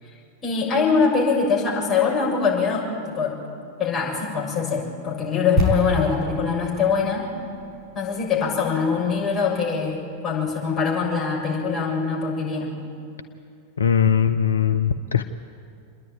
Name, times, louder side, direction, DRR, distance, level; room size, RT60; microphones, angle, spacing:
voice 1, 0.4-3.4 3.8-7.3 7.9-12.7, left 5 dB, 20° left, -5 dB, 7.1 m, -23 dB
sound 1, 5.6-9.5 9.8-9.9, left 1 dB, 15° right, 5.9 m, -28 dB
voice 2, 13.8-15.2, left 8 dB, 70° left, 8 dB, 0.6 m, -20 dB
28.0 x 10.5 x 9.2 m, 2.6 s
figure-of-eight pair, 90°, 0 cm